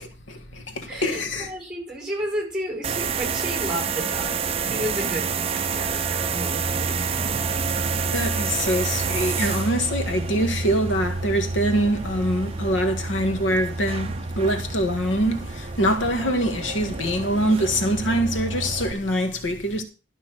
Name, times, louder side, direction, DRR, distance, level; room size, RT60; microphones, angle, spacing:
voice 1, 0.0-1.5 8.1-19.8, equal, 90° left, 1.8 m, -24 dB
voice 2, 0.9-7.6, equal, 5° right, 5.2 m, -32 dB
sound 1, 2.8-18.9, right 5 dB, 30° right, 0.7 m, -28 dB
12.5 x 5.8 x 6.2 m
head